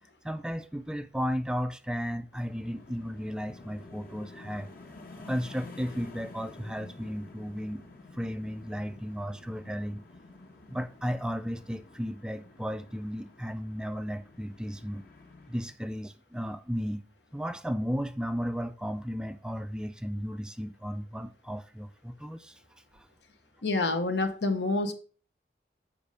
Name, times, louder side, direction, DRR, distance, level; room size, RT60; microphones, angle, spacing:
voice 1, 0.2-4.7 5.3-7.8 8.1-10.0 10.7-15.0 15.5-17.0 17.3-23.1, equal, 5° right, 0.3 m, -34 dB
sound 1, 2.3-15.7, left 2 dB, 55° left, 1.4 m, -50 dB
voice 2, 23.6-24.9, left 2 dB, 80° left, 1.0 m, -27 dB
7.0 x 5.2 x 4.9 m
head